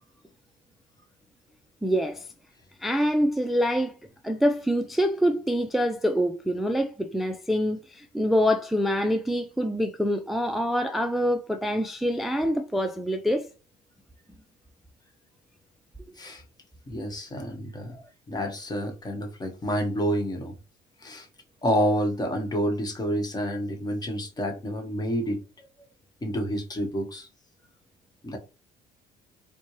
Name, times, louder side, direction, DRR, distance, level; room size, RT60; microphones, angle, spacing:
voice 1, 1.8-2.3 2.8-3.9 4.2-13.5 17.9-18.0, equal, ahead, 0.3 m, -25 dB
voice 2, 16.9-17.9 18.3-20.5 21.0-21.3 21.6-25.4 26.2-27.3 28.2-28.4, equal, 25° left, 1.1 m, -28 dB
4.2 x 2.2 x 3.1 m
cardioid pair, 110°, 17 cm